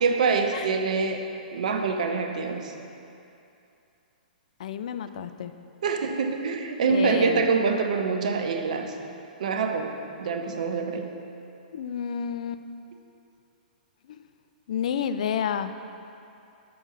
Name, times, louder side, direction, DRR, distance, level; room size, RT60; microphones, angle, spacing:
voice 1, 0.0-2.7 5.8-9.0 9.4-11.1, right 5 dB, 55° right, 5 dB, 0.7 m, -25 dB
voice 2, 4.6-5.5 6.9-7.5 11.7-12.6 14.7-15.7, left 8 dB, 50° left, 10 dB, 0.3 m, -29 dB
6.8 x 5.3 x 6.2 m, 2.7 s
figure-of-eight pair, 110°, 5 cm